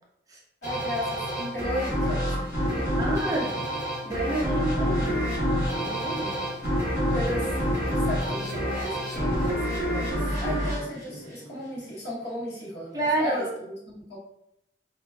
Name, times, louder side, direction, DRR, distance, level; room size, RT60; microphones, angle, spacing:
voice 1, 0.6-1.2 1.5-2.3 2.7-2.8 7.1-14.2, left 1 dB, 75° left, -7 dB, 1.0 m, -35 dB
sound 1, 0.6-11.9, equal, 45° left, 1.1 m, -28 dB
voice 2, 3.0-3.5 4.1-5.2 5.8-6.4 12.9-13.5, right 2 dB, 20° right, -2 dB, 0.4 m, -29 dB
2.3 x 2.3 x 2.3 m, 0.79 s
head